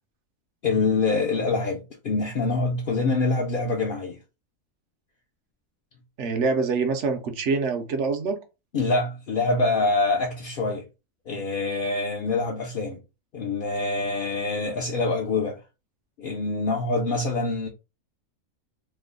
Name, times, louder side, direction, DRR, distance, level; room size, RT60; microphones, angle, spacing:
voice 1, 0.6-4.2 8.7-10.8 11.3-13.0 13.3-15.6 16.2-17.7, left 3 dB, 55° left, 0.6 m, -25 dB
voice 2, 6.2-8.4, right 4 dB, 65° right, 0.9 m, -25 dB
3.2 x 2.0 x 3.7 m
omnidirectional pair, 1.4 m